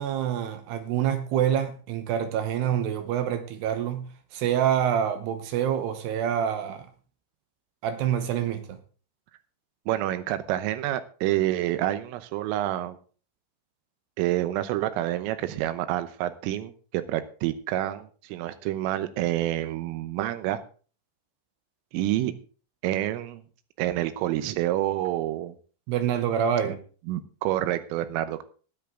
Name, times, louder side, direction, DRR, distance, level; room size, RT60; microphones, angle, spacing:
voice 1, 0.0-6.9 7.8-8.8 25.9-26.8, right 9 dB, 75° right, 9 dB, 2.6 m, -26 dB
voice 2, 9.9-13.0 14.2-20.6 21.9-22.3 22.8-23.4 23.8-25.6 26.6-26.8 27.1-28.4, right 14 dB, 90° right, 12 dB, 3.5 m, -28 dB
16.0 x 10.5 x 3.8 m, 0.39 s
omnidirectional pair, 5.7 m